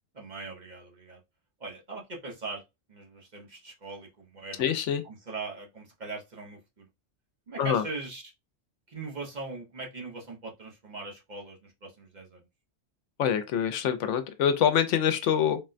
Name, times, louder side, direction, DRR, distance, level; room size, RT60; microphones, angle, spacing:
voice 1, 0.1-1.2 1.6-2.6 2.9-4.7 5.0-6.9 7.5-8.3 8.9-12.4, right 3 dB, 45° right, 0.8 m, -40 dB
voice 2, 4.6-5.0 7.6-7.8 13.2-15.6, left 8 dB, 85° left, 0.9 m, -25 dB
3.7 x 2.2 x 2.4 m
omnidirectional pair, 1.2 m